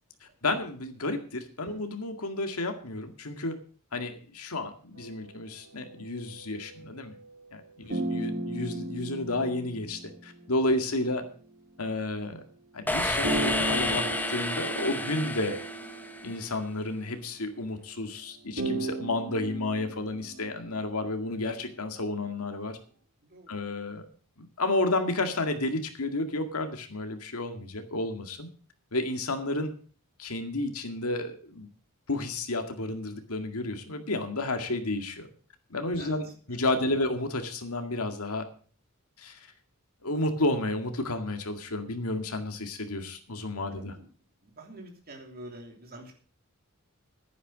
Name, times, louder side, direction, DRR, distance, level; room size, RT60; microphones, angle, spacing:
voice 1, 0.4-3.6 3.9-7.1 7.5-11.2 11.8-12.4 12.7-15.6 16.2-22.8 23.5-24.1 24.4-28.5 28.9-29.7 30.2-31.7 32.1-35.3 35.7-38.4 39.2-39.5 40.0-44.0, left 2 dB, 80° left, 6 dB, 2.0 m, -31 dB
sound 1, 5.0-7.6 7.9-11.5 13.2-16.9 18.6-20.8, right 2 dB, 60° right, 2.7 m, -36 dB
sound 2, 12.9-16.7, left 1 dB, 10° left, 1.1 m, -30 dB
voice 2, 23.2-23.5 36.0-36.6 43.7-44.1 44.4-46.1, right 1 dB, 45° right, 2 dB, 3.1 m, -47 dB
11.0 x 9.8 x 6.2 m, 0.42 s
head